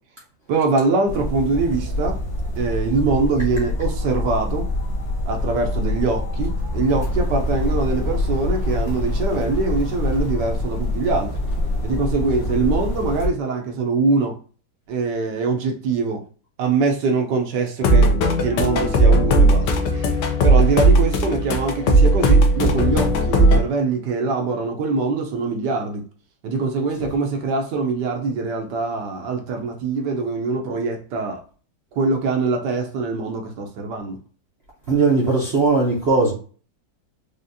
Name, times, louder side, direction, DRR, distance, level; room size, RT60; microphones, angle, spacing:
voice 1, 0.5-2.2 2.6-4.7 5.3-11.4 11.8-14.4 14.9-16.2 16.6-18.1 18.4-26.0 26.4-31.4 31.9-34.2, right 4 dB, 75° right, 1.2 m, -23 dB
sound 1, 1.1-13.3, left 1 dB, 50° left, 0.9 m, -25 dB
sound 2, 17.8-23.6, right 1 dB, 75° left, 1.3 m, -16 dB
voice 2, 34.9-36.3, right 3 dB, 50° right, 0.8 m, -19 dB
4.9 x 2.4 x 2.6 m
omnidirectional pair, 2.0 m